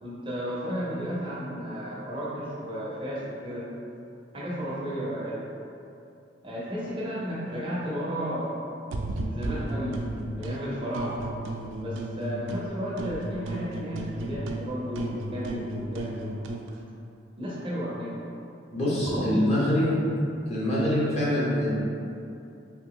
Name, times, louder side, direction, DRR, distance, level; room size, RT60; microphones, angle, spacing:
voice 1, 0.0-3.7 4.3-5.4 6.4-8.6 9.2-10.0 10.3-11.2 11.7-16.3 17.4-18.1 19.0-19.4, equal, 30° right, -7 dB, 0.6 m, -33 dB
sound 1, 8.9-10.6 10.9-12.7 13.0-16.7, right 2 dB, 90° right, 0.3 m, -34 dB
voice 2, 18.7-20.0 20.5-21.7, left 1 dB, 35° left, -8 dB, 0.8 m, -25 dB
3.0 x 2.4 x 3.7 m, 2.6 s
head